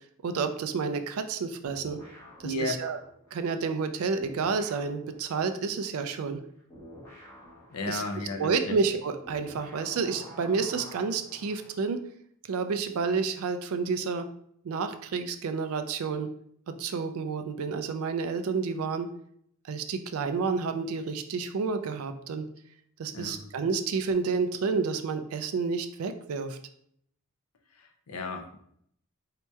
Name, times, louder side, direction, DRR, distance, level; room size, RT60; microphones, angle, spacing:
voice 1, 0.2-2.0 2.4-3.0 3.3-6.4 7.9-8.0 8.4-12.0 12.5-14.3 14.6-16.3 16.7-19.1 19.7-22.5 23.0-26.6, right 5 dB, 70° right, 9 dB, 0.4 m, -30 dB
sound 1, 1.6-3.9 4.2-11.8, equal, 15° left, 1.0 m, -49 dB
voice 2, 2.4-2.7 7.7-8.8 23.1-23.4 28.1-28.6, left 2 dB, 80° left, 5 dB, 0.5 m, -33 dB
4.2 x 2.8 x 2.3 m, 0.69 s
head